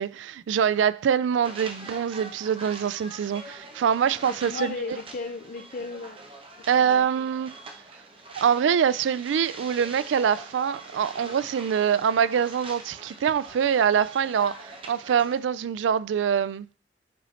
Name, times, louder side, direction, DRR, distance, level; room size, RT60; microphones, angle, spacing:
voice 1, 0.0-5.0 6.7-7.5 8.4-16.7, right 7 dB, 85° right, 0.3 m, -24 dB
sound 1, 1.4-15.4, right 2 dB, 30° right, 0.9 m, -44 dB
voice 2, 4.2-6.2 6.7-7.1, left 4 dB, 50° left, 0.5 m, -35 dB
8.4 x 4.3 x 4.1 m
head